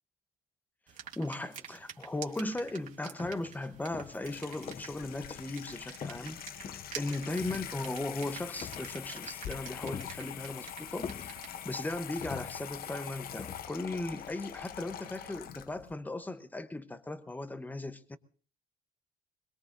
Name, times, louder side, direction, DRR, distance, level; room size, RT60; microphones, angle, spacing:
sound 1, 0.9-12.0, right 8 dB, 50° right, 2.4 m, -49 dB
voice 1, 1.2-18.2, left 2 dB, 10° left, 1.0 m, -37 dB
sound 2, 2.6-2.7 3.2-3.6 3.9-5.1 5.3-5.6 6.0-7.1 7.4-8.1 8.6-9.2 9.5-10.6 11.0-11.8 12.2-12.9 13.4-13.7, left 7 dB, 35° left, 0.7 m, -45 dB
Water tap faucet / Sink (filling or washing), 3.7-15.9, left 10 dB, 60° left, 0.9 m, -44 dB
22.5 x 21.0 x 2.7 m
cardioid pair, 110°, 17 cm